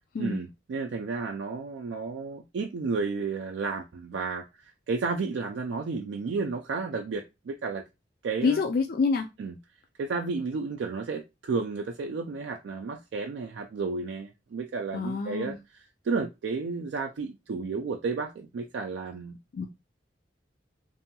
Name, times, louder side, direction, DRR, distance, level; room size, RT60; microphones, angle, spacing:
voice 1, 0.2-7.8 8.2-8.6 9.4-9.5 10.0-19.4, right 4 dB, 80° right, 0.3 m, -32 dB
voice 2, 8.4-9.3 14.9-15.6 19.5-19.7, left 4 dB, 55° left, 0.3 m, -27 dB
2.6 x 2.2 x 2.8 m
head